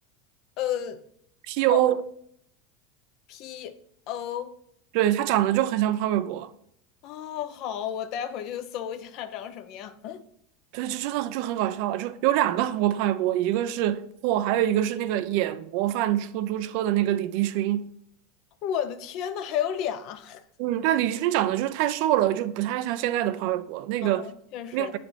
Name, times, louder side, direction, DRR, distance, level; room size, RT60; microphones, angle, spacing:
voice 1, 0.6-1.0 1.7-1.8 3.3-3.8 4.1-4.5 7.0-10.2 18.6-20.4 24.0-25.0, left 10 dB, 55° left, 0.6 m, -32 dB
voice 2, 1.5-2.0 4.9-6.5 10.7-17.9 20.6-24.3 24.7-25.0, right 13 dB, 65° right, 0.4 m, -25 dB
7.5 x 4.2 x 3.2 m
hypercardioid pair, 95°, 0 cm